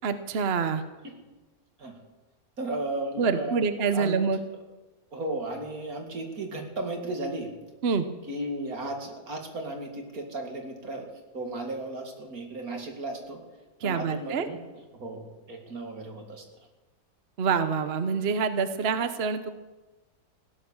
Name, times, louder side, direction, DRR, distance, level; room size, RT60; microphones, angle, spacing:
voice 1, 0.0-0.8 3.2-4.4 7.8-8.0 13.8-14.5 17.4-19.5, right 5 dB, 50° right, 10 dB, 1.0 m, -26 dB
voice 2, 2.6-3.7 3.9-4.1 5.1-7.5 8.3-11.1 11.3-13.4 13.8-14.6 15.0-16.4, right 2 dB, 75° right, 3 dB, 2.8 m, -35 dB
16.5 x 11.0 x 7.1 m, 1.1 s
omnidirectional pair, 1.5 m